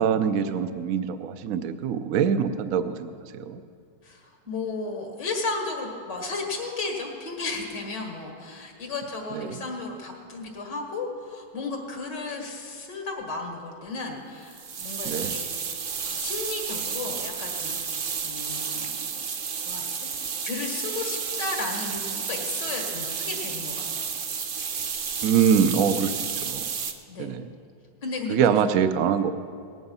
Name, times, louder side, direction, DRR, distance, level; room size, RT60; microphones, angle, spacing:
voice 1, 0.0-3.6 9.3-9.6 15.0-15.3 25.2-26.1 26.4-26.7 27.2-27.5 28.3-29.3, right 7 dB, 65° right, 10 dB, 0.9 m, -24 dB
voice 2, 4.0-15.5 16.0-20.1 20.4-24.1 27.1-27.3 28.0-28.6, left 3 dB, 80° left, 1 dB, 2.4 m, -34 dB
sound 1, 14.5-26.9, right 6 dB, 85° right, 0.4 m, -31 dB
18.5 x 9.6 x 5.6 m, 2.2 s
omnidirectional pair, 1.9 m